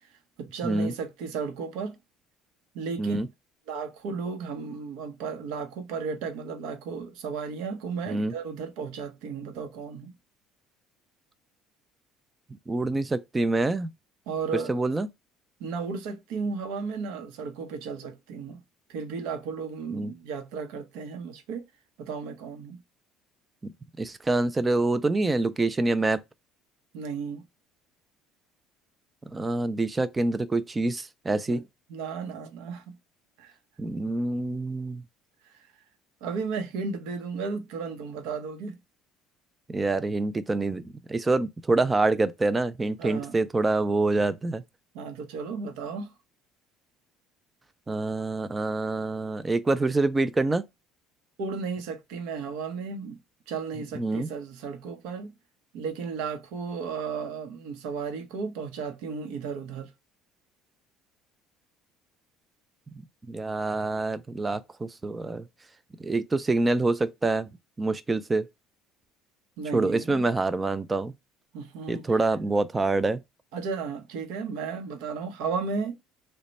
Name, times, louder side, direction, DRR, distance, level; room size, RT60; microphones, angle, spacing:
voice 1, 0.4-2.0 2.7-3.2 3.7-10.1 14.3-14.8 15.6-18.6 18.9-21.6 22.0-22.8 26.9-27.4 31.5-31.6 31.9-33.0 33.4-33.5 35.4-35.6 36.2-38.8 43.0-43.4 44.9-46.1 51.4-53.2 53.5-55.3 55.7-59.9 69.6-70.3 71.5-72.2 73.5-76.0, right 5 dB, 80° right, 0.8 m, -34 dB
voice 2, 12.7-13.9 14.7-15.1 19.9-20.1 23.6-26.2 29.3-31.6 33.8-35.0 39.7-40.8 41.1-44.6 47.9-50.6 53.9-54.3 63.3-65.4 66.0-67.5 67.8-68.5 69.7-71.1 71.9-73.2, right 2 dB, 15° right, 0.3 m, -26 dB
3.1 x 2.2 x 3.9 m
cardioid pair, 150°, 0 cm